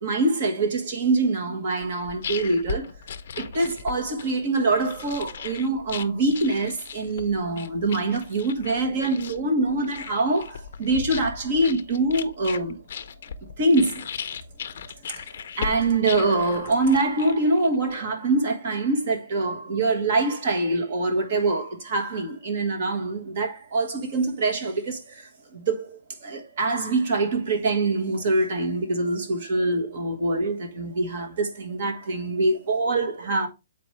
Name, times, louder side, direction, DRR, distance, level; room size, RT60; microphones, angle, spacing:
voice 1, 0.0-2.9 3.4-12.8 13.6-14.0 15.1-15.3 15.6-33.5, right 2 dB, 35° right, 1.3 m, -24 dB
sound 1, 1.8-17.9, left 7 dB, 45° left, 0.6 m, -37 dB
7.0 x 4.6 x 3.2 m
hypercardioid pair, 180°, 0 cm